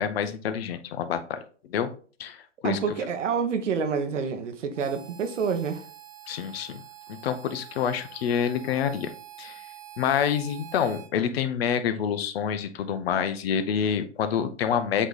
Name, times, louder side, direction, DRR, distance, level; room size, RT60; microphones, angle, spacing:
voice 1, 0.0-1.4 1.7-1.9 2.2-2.4 2.6-2.8 6.3-6.8 7.1-9.1 9.4-9.6 10.0-15.1, left 8 dB, 55° left, 0.9 m, -27 dB
voice 2, 2.6-5.8, right 6 dB, 75° right, 1.4 m, -28 dB
Harmonica, 4.7-11.1, right 12 dB, 35° right, 1.5 m, -46 dB
7.8 x 3.1 x 4.0 m
hypercardioid pair, 135°, 37 cm